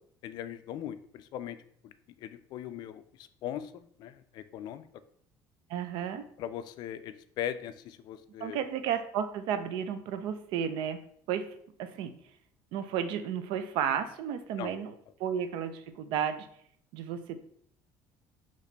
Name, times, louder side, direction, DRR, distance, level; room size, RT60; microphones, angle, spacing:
voice 1, 0.2-1.6 1.8-1.9 2.2-4.9 6.4-8.6 14.6-14.7, left 10 dB, 55° left, 12 dB, 0.3 m, -39 dB
voice 2, 5.7-6.2 8.4-11.0 11.3-11.5 11.8-12.1 12.7-14.9 15.2-16.5 16.9-17.4, right 8 dB, 70° right, 10 dB, 0.5 m, -32 dB
4.2 x 3.0 x 3.9 m, 0.64 s
cardioid pair, 155°, 9 cm